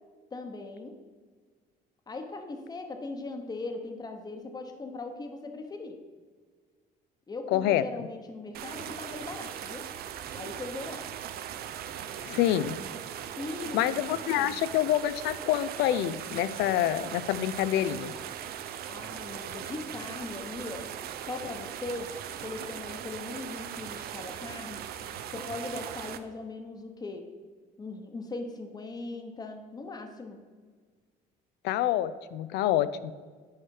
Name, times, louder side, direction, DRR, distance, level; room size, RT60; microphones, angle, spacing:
voice 1, 0.3-1.0 2.1-6.0 7.3-9.9 10.3-11.1 13.4-13.9 14.4-14.6 18.9-20.9 21.2-22.1 22.4-24.9 25.3-27.3 27.8-30.4, left 3 dB, 25° left, 5 dB, 1.0 m, -39 dB
voice 2, 7.5-8.1 12.2-12.8 13.7-18.1 31.6-33.1, left 12 dB, 85° left, 15 dB, 0.5 m, -27 dB
sound 1, 8.5-26.2, right 10 dB, 65° right, 0.6 m, -39 dB
10.5 x 4.8 x 4.7 m, 1.5 s
cardioid pair, 110°, 17 cm